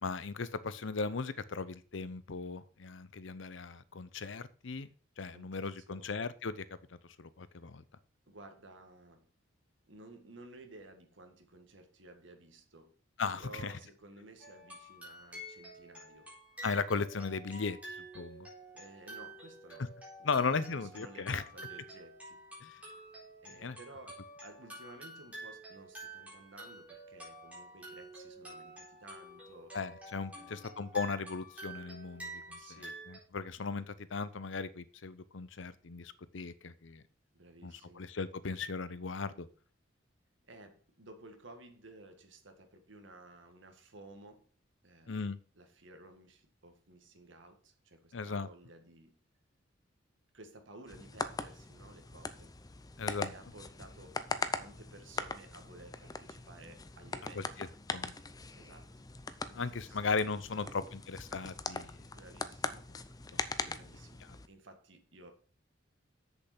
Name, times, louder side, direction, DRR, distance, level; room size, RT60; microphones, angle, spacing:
voice 1, 0.0-4.9 5.2-6.6 6.9-7.8 13.2-13.7 16.6-17.8 18.1-18.5 20.2-21.4 22.6-22.7 23.5-23.8 29.7-32.6 33.1-37.0 37.6-39.5 45.1-45.4 48.1-48.5 53.0-53.3 57.6-57.7 57.9-58.1 59.5-62.1 63.3-63.7, left 4 dB, 70° left, 0.7 m, -37 dB
voice 2, 5.3-6.1 8.3-9.3 9.9-13.0 13.3-16.3 18.7-19.9 20.2-22.5 23.4-29.8 30.3-30.7 32.6-33.1 37.3-38.1 40.5-44.5 44.8-45.2 45.5-49.2 50.3-52.6 53.3-54.2 54.6-57.7 58.6-59.0 59.4-60.0 60.5-60.8 62.1-62.9 63.7-65.3, right 2 dB, 70° right, 1.9 m, -55 dB
sound 1, 14.4-33.2, right 1 dB, 5° right, 4.2 m, -49 dB
sound 2, 50.9-64.5, left 3 dB, 20° left, 0.6 m, -41 dB
7.9 x 6.9 x 6.0 m
head